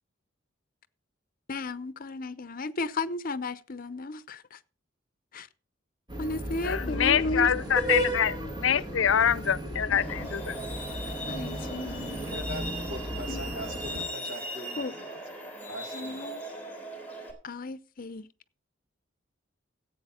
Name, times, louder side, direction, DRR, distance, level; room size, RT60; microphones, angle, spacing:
voice 1, 1.5-4.6 5.3-5.5 6.2-7.5 11.3-12.1 13.3-13.4 14.8-14.9 15.9-16.4 17.4-18.3, left 2 dB, 45° left, 0.7 m, -34 dB
sound 1, 6.1-14.0, right 1 dB, 25° right, 2.4 m, -34 dB
voice 2, 6.6-10.6, left 8 dB, 85° left, 0.6 m, -25 dB
Truck, 9.9-17.3, equal, 10° left, 3.5 m, -39 dB
voice 3, 12.0-15.2 15.7-16.2, equal, 75° right, 2.5 m, -42 dB
15.0 x 8.4 x 4.3 m
head